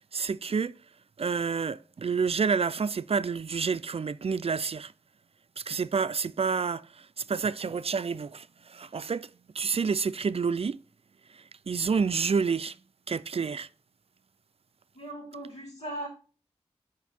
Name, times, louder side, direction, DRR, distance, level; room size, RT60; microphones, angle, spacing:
voice 1, 0.1-0.8 1.2-4.9 5.6-9.3 9.5-10.8 11.3-12.8 13.1-13.7, right 5 dB, 60° right, 0.4 m, -29 dB
voice 2, 14.9-16.1, right 1 dB, 75° left, 4.5 m, -38 dB
6.3 x 5.9 x 4.3 m
cardioid pair, 50°, 12 cm